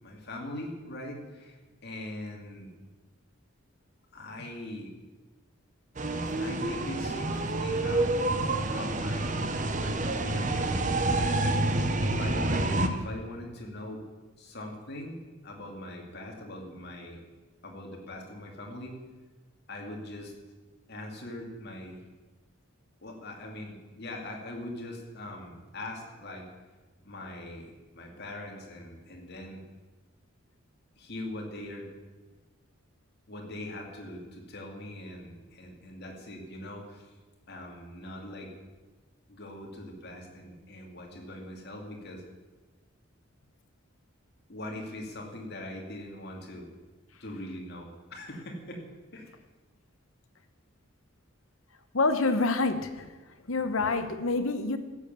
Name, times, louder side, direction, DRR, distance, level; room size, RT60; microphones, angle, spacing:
voice 1, 0.0-1.6 1.8-2.7 4.1-4.9 6.4-8.2 8.7-9.5 9.8-11.6 12.0-14.0 14.4-17.2 17.6-19.0 19.7-20.3 20.9-22.0 23.0-26.4 27.0-27.7 28.0-29.6 31.0-31.9 33.3-37.1 37.5-38.5 39.3-42.2 44.5-46.7 47.2-48.8 49.1-49.3, left 1 dB, 50° left, 1 dB, 2.6 m, -41 dB
sound 1, 6.0-12.9, right 2 dB, 35° right, 0.9 m, -28 dB
voice 2, 51.9-53.0 53.5-54.8, left 3 dB, 75° left, 9 dB, 1.1 m, -27 dB
15.5 x 7.4 x 6.9 m, 1.2 s
head